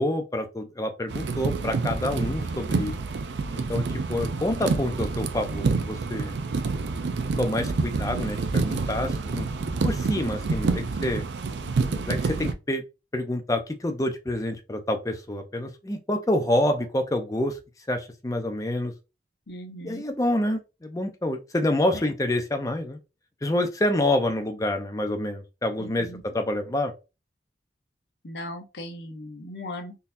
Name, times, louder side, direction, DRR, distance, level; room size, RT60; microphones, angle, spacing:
voice 1, 0.0-2.9 3.7-3.8 4.1-6.3 7.4-9.5 9.8-11.2 12.1-12.8 13.1-17.6 17.9-18.9 19.8-23.0 23.4-26.1 26.3-26.9, left 1 dB, 20° left, 0.5 m, -27 dB
sound 1, 1.1-12.5, right 4 dB, 80° right, 0.4 m, -28 dB
voice 2, 11.6-12.1 19.5-20.1 25.8-26.2 28.2-30.0, left 1 dB, 75° left, 0.8 m, -38 dB
3.8 x 2.7 x 2.6 m
head